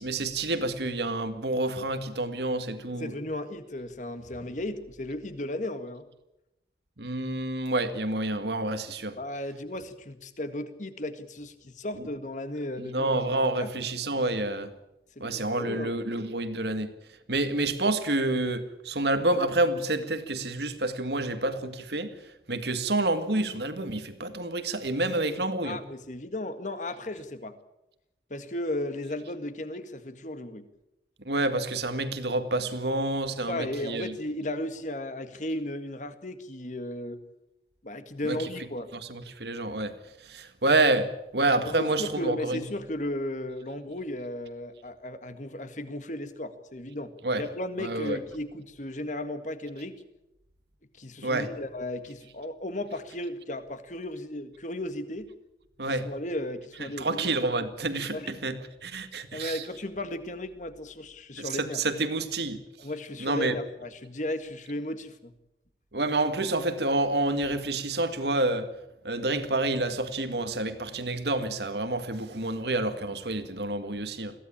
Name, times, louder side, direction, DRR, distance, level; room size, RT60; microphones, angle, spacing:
voice 1, 0.0-3.1 7.0-9.2 12.0-12.1 12.8-14.7 15.2-16.9 17.3-22.1 22.5-25.8 31.3-34.1 38.2-38.4 38.9-39.9 40.3-42.6 47.2-47.4 47.8-48.2 51.2-51.5 55.8-56.1 57.0-59.6 61.4-62.6 63.2-63.6 65.9-68.7 69.0-74.3, right 2 dB, 70° right, 2.0 m, -28 dB
voice 2, 2.9-6.1 9.2-13.7 15.2-15.9 25.6-27.5 28.3-30.6 33.5-37.2 37.8-38.9 41.6-47.1 47.4-49.9 51.0-55.3 55.9-57.3 58.1-58.3 59.3-61.8 62.8-65.3, left 1 dB, 45° left, 1.8 m, -35 dB
22.0 x 16.5 x 8.8 m
head